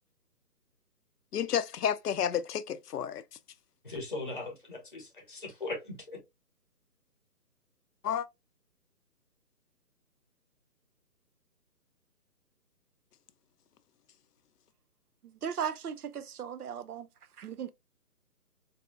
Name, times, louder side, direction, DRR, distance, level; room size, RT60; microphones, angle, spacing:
voice 1, 1.3-3.2 8.0-8.3, left 9 dB, 70° left, 0.5 m, -31 dB
voice 2, 3.8-6.2, left 2 dB, 30° left, 0.7 m, -39 dB
voice 3, 15.2-17.1 17.4-17.7, right 8 dB, 65° right, 0.5 m, -37 dB
4.0 x 2.6 x 2.3 m
hypercardioid pair, 180°, 48 cm